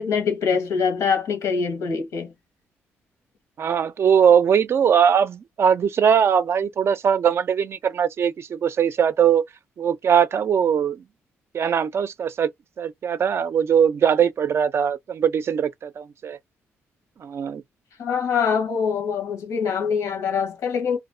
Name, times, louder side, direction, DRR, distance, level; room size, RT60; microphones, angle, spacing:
voice 1, 0.0-2.3 18.0-21.0, left 6 dB, 80° left, 1.1 m, -24 dB
voice 2, 3.6-9.4 9.8-11.0 11.5-12.5 12.8-16.4 17.2-17.6, right 8 dB, 55° right, 0.4 m, -20 dB
2.5 x 2.0 x 2.5 m
cardioid pair, 70°, 5 cm